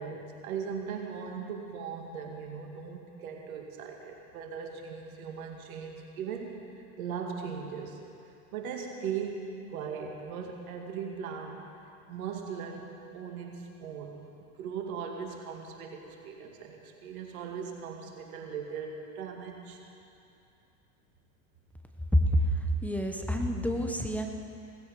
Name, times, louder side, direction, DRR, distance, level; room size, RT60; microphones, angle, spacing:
voice 1, 0.0-8.0 8.5-11.6 12.1-19.8, right 6 dB, 75° right, 2 dB, 2.2 m, -39 dB
voice 2, 22.1-22.4 22.8-24.3, equal, 5° left, 3 dB, 1.4 m, -27 dB
17.5 x 15.0 x 5.1 m, 2.7 s
hypercardioid pair, 85°, 42 cm